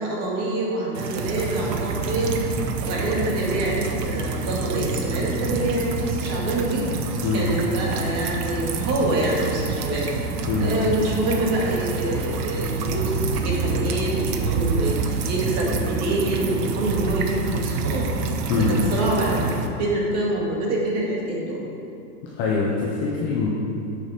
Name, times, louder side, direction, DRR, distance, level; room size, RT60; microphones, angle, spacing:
voice 1, 0.0-2.4 2.9-7.0 7.3-10.1 10.6-18.4 18.7-21.7, right 1 dB, 35° right, -3 dB, 1.8 m, -26 dB
sound 1, 0.9-19.7, right 4 dB, 85° right, 0.9 m, -27 dB
voice 2, 22.4-23.5, left 4 dB, 20° left, -3 dB, 0.4 m, -23 dB
8.9 x 6.5 x 3.6 m, 2.6 s
supercardioid pair, 140°, 47 cm